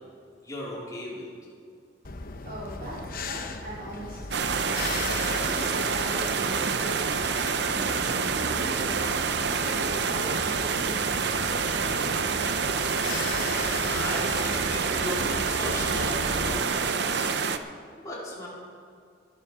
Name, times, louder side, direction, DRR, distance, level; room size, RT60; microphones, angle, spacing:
voice 1, 0.4-1.3 13.8-17.3 18.0-18.5, left 1 dB, 20° left, -6 dB, 3.6 m, -37 dB
sound 1, 2.0-16.6, left 3 dB, 45° left, 0.8 m, -37 dB
voice 2, 2.4-9.0 9.4-12.3, right 1 dB, 40° right, -8 dB, 3.2 m, -40 dB
sound 2, 4.3-17.6, right 5 dB, 55° right, 0.6 m, -27 dB
19.5 x 7.5 x 6.0 m, 2.3 s
head